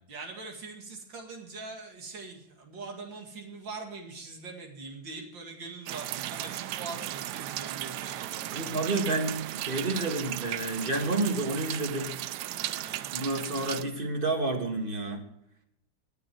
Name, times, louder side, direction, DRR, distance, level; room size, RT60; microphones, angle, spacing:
voice 1, 0.1-9.0 12.6-13.1, right 3 dB, 90° right, 2 dB, 3.0 m, -43 dB
sound 1, 5.9-13.8, right 13 dB, 75° right, 1.1 m, -36 dB
voice 2, 8.5-12.2 13.1-15.2, right 2 dB, 30° right, 4 dB, 1.9 m, -30 dB
19.0 x 6.6 x 4.6 m, 0.79 s
omnidirectional pair, 2.0 m